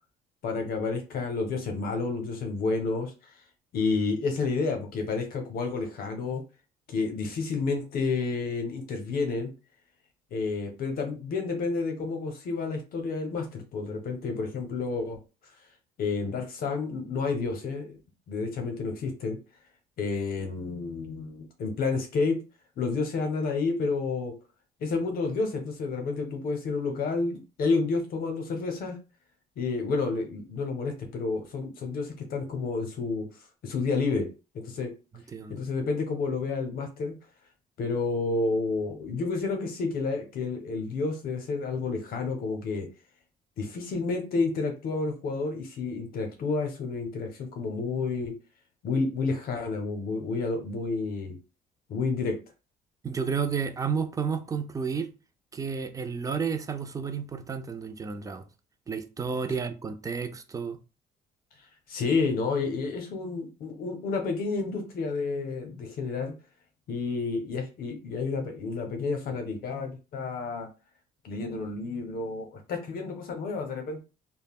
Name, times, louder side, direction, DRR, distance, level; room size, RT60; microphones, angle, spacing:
voice 1, 0.4-3.3 3.7-6.4 6.9-9.5 10.3-15.2 16.0-18.0 18.3-19.4 20.0-22.4 22.8-24.3 24.8-29.0 29.6-33.3 33.6-34.3 34.5-34.9 35.5-37.2 37.8-42.9 43.6-48.3 48.8-51.4 51.9-52.4 61.9-66.3 66.9-70.7 71.2-74.0, left 4 dB, 60° left, 0.7 m, -30 dB
voice 2, 53.0-55.1 55.5-58.4 58.9-60.8, right 6 dB, 20° right, 0.4 m, -31 dB
3.3 x 2.0 x 2.3 m
cardioid pair, 110°, 17 cm